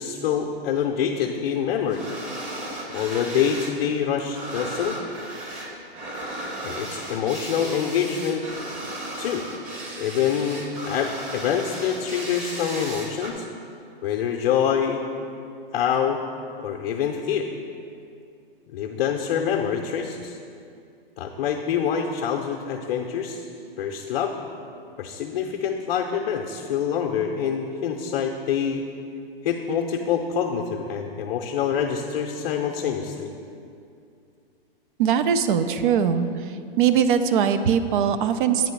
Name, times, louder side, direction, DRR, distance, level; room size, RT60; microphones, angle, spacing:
voice 1, 0.0-2.0 2.9-5.0 6.6-8.5 9.2-9.4 10.0-13.5 14.0-15.0 15.7-16.2 16.6-17.5 18.7-20.4 21.2-23.4 23.8-24.4 25.0-28.8 29.4-33.3, left 8 dB, 55° left, 1 dB, 0.6 m, -26 dB
sound 1, 1.9-3.8 4.0-13.3, right 1 dB, 25° right, 1.0 m, -35 dB
voice 2, 35.0-36.3 36.8-38.7, right 7 dB, 55° right, 10 dB, 0.5 m, -21 dB
8.9 x 3.0 x 5.8 m, 2.4 s
hypercardioid pair, 120°, 30 cm